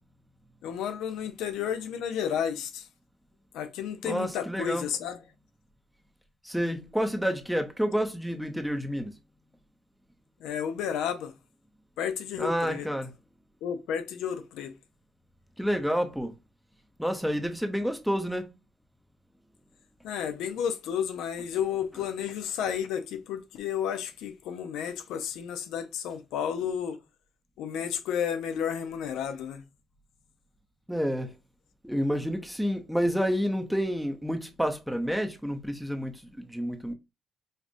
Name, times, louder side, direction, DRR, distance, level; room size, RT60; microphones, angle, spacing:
voice 1, 0.6-2.9 3.5-5.3 10.4-11.3 12.0-12.9 13.6-14.7 20.0-27.0 27.6-29.6, left 8 dB, 90° left, 0.5 m, -32 dB
voice 2, 4.0-4.8 6.5-9.1 12.4-13.1 15.6-16.3 17.0-18.5 30.9-31.3 31.8-36.1 36.5-36.9, equal, ahead, 0.6 m, -29 dB
5.2 x 2.5 x 2.6 m
cardioid pair, 90°, 0 cm